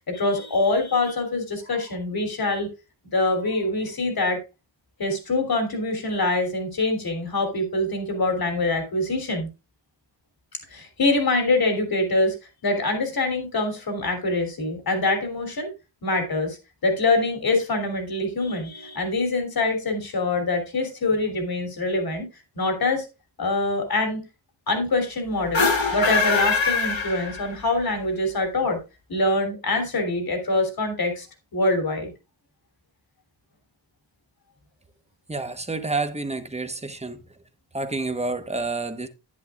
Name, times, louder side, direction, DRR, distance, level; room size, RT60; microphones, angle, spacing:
voice 1, 0.1-2.7 3.1-4.4 5.0-9.5 10.7-12.4 12.6-15.7 16.0-16.6 16.8-22.3 22.5-23.1 23.4-24.2 24.7-28.8 29.1-31.3 31.5-32.1, left 2 dB, 50° left, 3.1 m, -24 dB
sound 1, 25.4-27.8, left 4 dB, 75° left, 2.5 m, -23 dB
voice 2, 35.3-37.2 37.7-39.1, right 3 dB, 15° right, 1.1 m, -29 dB
10.5 x 10.5 x 2.4 m
wide cardioid pair, 125°, 46 cm